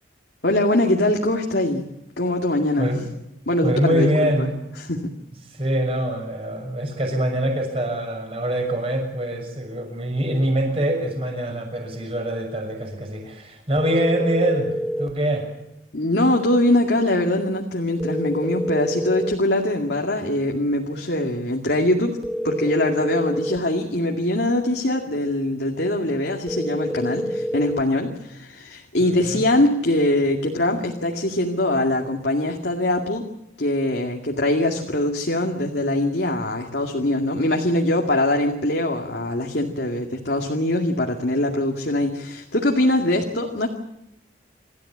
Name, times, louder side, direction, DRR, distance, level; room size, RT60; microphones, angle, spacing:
voice 1, 0.4-1.9 2.2-2.9 3.5-4.5 4.9-5.0 15.9-22.2 22.4-33.2 33.6-43.7, left 1 dB, 65° left, 1 dB, 2.3 m, -22 dB
voice 2, 3.6-4.6 5.4-15.5 29.0-29.5, right 1 dB, 30° right, 3 dB, 6.4 m, -24 dB
sound 1, 13.8-15.2 18.0-19.4 22.2-23.6 26.5-27.9, equal, ahead, 0.9 m, -27 dB
27.5 x 14.0 x 8.7 m, 0.90 s
head